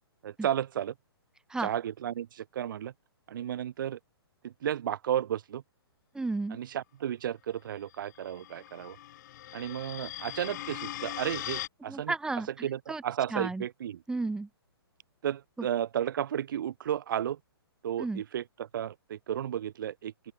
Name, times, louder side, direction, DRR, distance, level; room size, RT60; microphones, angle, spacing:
voice 1, 0.2-0.9 1.6-2.9 3.3-4.0 4.4-5.6 6.5-9.0 9.5-12.1 12.6-14.0 15.2-17.4 17.8-20.3, right 10 dB, 55° right, 4.7 m, -33 dB
voice 2, 6.1-6.6 11.9-13.0 13.3-13.6 14.1-14.5 18.0-18.2, right 3 dB, 5° right, 2.2 m, -33 dB
sound 1, 8.1-11.7, left 14 dB, 45° left, 2.6 m, -40 dB
open air
figure-of-eight pair, 125°, 13 cm